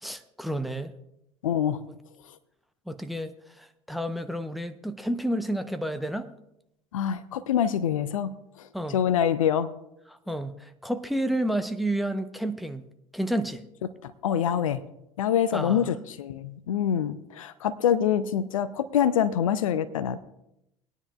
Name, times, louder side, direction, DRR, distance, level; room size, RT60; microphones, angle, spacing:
voice 1, 0.0-0.9 2.9-6.3 8.7-9.0 10.3-12.8 13.1-13.6 15.5-15.9, right 1 dB, ahead, 10 dB, 0.8 m, -30 dB
voice 2, 1.4-1.8 6.9-8.3 8.6-8.7 8.9-9.7 14.0-14.8 15.2-20.2, left 9 dB, 75° left, 16 dB, 0.5 m, -25 dB
20.5 x 9.9 x 2.4 m, 0.83 s
figure-of-eight pair, 60°, 18 cm